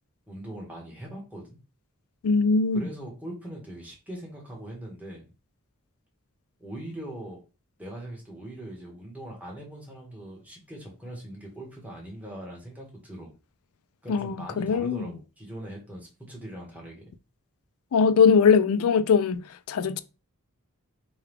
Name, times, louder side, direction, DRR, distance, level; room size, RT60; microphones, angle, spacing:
voice 1, 0.3-1.6 2.7-5.3 6.6-7.4 7.8-13.3 14.0-17.0, right 1 dB, 5° right, 1.1 m, -41 dB
voice 2, 2.2-2.8 14.1-15.0 17.9-20.0, left 5 dB, 70° left, 0.4 m, -21 dB
4.6 x 2.3 x 3.4 m
head